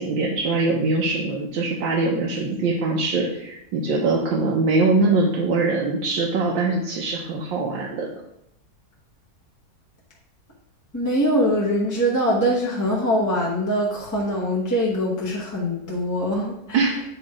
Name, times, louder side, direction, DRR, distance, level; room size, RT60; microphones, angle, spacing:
voice 1, 0.0-8.2 16.7-17.0, right 3 dB, 85° right, -2 dB, 1.5 m, -22 dB
voice 2, 10.9-16.8, equal, 15° left, -4 dB, 0.7 m, -23 dB
8.4 x 3.1 x 4.8 m, 0.77 s
omnidirectional pair, 2.0 m